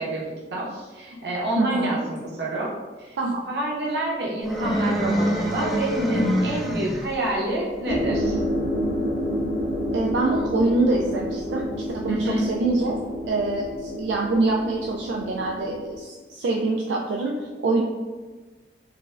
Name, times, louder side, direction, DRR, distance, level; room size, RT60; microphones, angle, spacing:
voice 1, 0.0-2.7 3.0-3.1 3.5-8.4 12.1-12.5, right 1 dB, 70° right, -3 dB, 0.8 m, -27 dB
voice 2, 1.6-1.9 3.2-3.4 9.9-11.6 11.9-13.0 13.2-17.8, right 2 dB, 85° right, -1 dB, 0.3 m, -25 dB
sound 1, 4.4-7.3, equal, ahead, 0.4 m, -26 dB
sound 2, 7.8-16.0, equal, 60° left, 1.2 m, -29 dB
4.7 x 2.0 x 2.4 m, 1.3 s
head